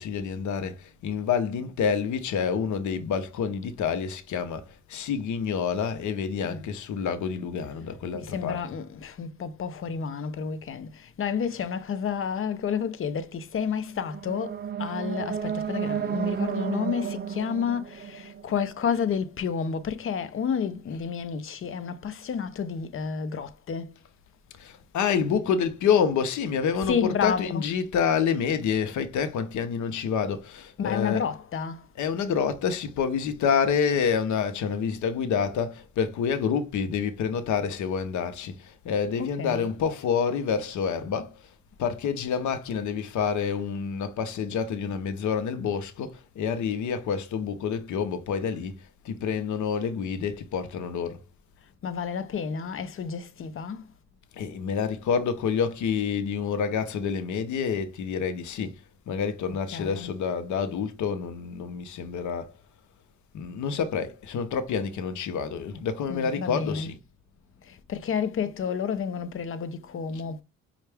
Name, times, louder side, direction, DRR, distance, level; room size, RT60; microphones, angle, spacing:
voice 1, 0.0-8.6 20.9-21.0 24.6-31.2 31.9-41.5 41.8-51.2 54.3-62.5 63.3-67.0 70.1-70.2, left 6 dB, 75° left, 0.8 m, -28 dB
voice 2, 8.1-24.0 26.8-27.7 30.8-31.9 39.2-39.7 51.8-53.9 59.7-60.1 66.1-66.9 67.6-70.4, left 6 dB, 45° left, 0.7 m, -30 dB
sound 1, 13.9-19.0, right 7 dB, 35° right, 0.6 m, -32 dB
5.5 x 2.4 x 3.4 m
cardioid pair, 90°, 30 cm